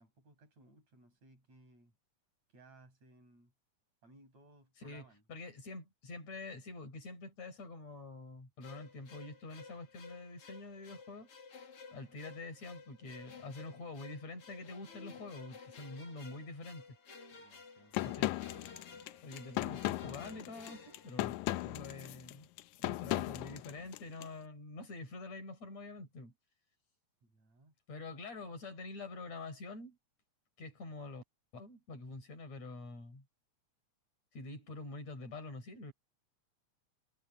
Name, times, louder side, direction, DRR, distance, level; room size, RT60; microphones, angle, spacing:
voice 1, 0.0-2.0 2.5-3.5 4.0-5.2 17.3-18.0 27.2-27.7, right 2 dB, 65° right, 8.7 m, -62 dB
voice 2, 5.3-11.3 11.9-16.8 18.0-18.4 19.2-21.3 21.6-22.5 22.8-26.3 27.9-30.0 30.6-31.2 31.5-33.2 34.3-35.9, left 3 dB, 65° left, 6.6 m, -46 dB
sound 1, 8.6-21.9, left 4 dB, 50° left, 3.2 m, -54 dB
sound 2, 17.9-24.3, left 17 dB, 85° left, 2.1 m, -37 dB
omnidirectional pair, 3.3 m